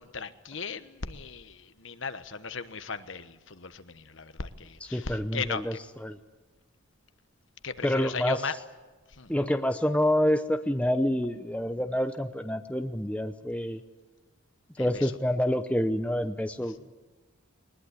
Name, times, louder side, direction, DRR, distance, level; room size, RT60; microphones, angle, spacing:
voice 1, 0.0-5.8 7.6-8.5 9.1-9.3 14.8-15.1, left 5 dB, 60° left, 11 dB, 1.2 m, -37 dB
voice 2, 4.9-5.7 6.0-6.2 7.8-8.4 9.3-13.8 14.8-16.9, left 1 dB, 5° left, 8 dB, 0.8 m, -27 dB
21.0 x 20.5 x 9.6 m, 1.2 s
head